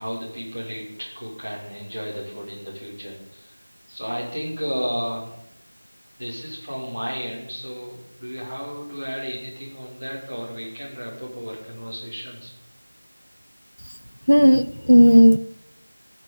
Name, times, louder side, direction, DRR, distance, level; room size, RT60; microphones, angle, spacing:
voice 1, 0.0-3.5 3.9-5.3 6.2-12.5, equal, 15° right, 2.6 m, -33 dB
voice 2, 14.3-15.4, equal, 85° left, 0.7 m, -13 dB
14.5 x 6.0 x 9.2 m
figure-of-eight pair, 180°, 0 cm